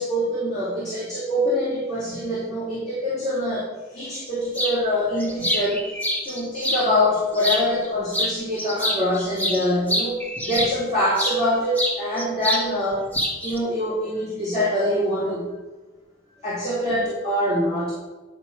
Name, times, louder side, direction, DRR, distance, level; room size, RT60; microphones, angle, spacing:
voice 1, 0.0-5.8 6.2-10.2 10.4-13.1 13.4-15.5 16.4-17.9, left 1 dB, 35° left, -9 dB, 2.7 m, -24 dB
sound 1, 4.5-4.8 5.2-6.9 7.3-7.9 8.1-11.4 11.8-12.7 12.9-13.6, equal, 10° left, 1.1 m, -26 dB
10.5 x 5.9 x 4.6 m, 1.2 s
head